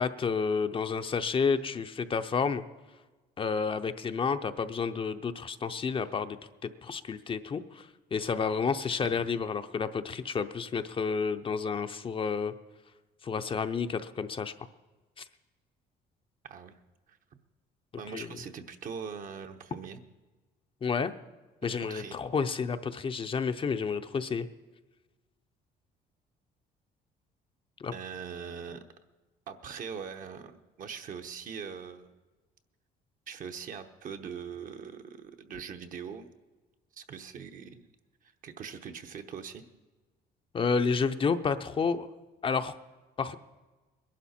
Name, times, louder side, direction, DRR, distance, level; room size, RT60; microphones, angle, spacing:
voice 1, 0.0-2.6 3.4-6.4 6.6-12.5 13.2-14.5 15.2-15.3 18.1-18.3 20.8-21.1 21.6-24.5 27.8-27.9 40.5-42.1 42.4-42.7 43.2-43.4, left 5 dB, 30° left, 9 dB, 0.6 m, -30 dB
voice 2, 16.4-16.8 17.1-17.2 18.0-20.0 21.9-22.2 27.9-28.8 29.5-32.1 33.3-36.3 36.9-37.9 38.4-39.7, right 6 dB, 55° right, 7 dB, 1.0 m, -42 dB
21.0 x 11.5 x 4.3 m, 1.2 s
cardioid pair, 110°, 17 cm